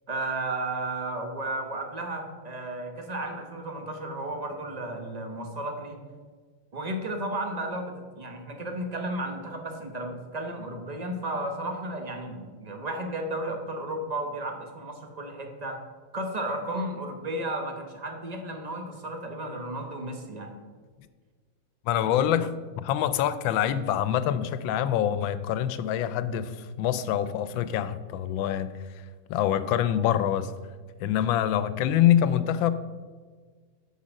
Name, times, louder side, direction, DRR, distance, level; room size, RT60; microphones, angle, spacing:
voice 1, 0.1-6.0 6.7-15.8 16.1-20.5, right 1 dB, 30° right, 3 dB, 0.8 m, -33 dB
voice 2, 21.8-30.5 31.0-32.7, left 10 dB, 90° left, 14 dB, 1.4 m, -25 dB
8.2 x 5.6 x 6.3 m, 1.5 s
omnidirectional pair, 2.1 m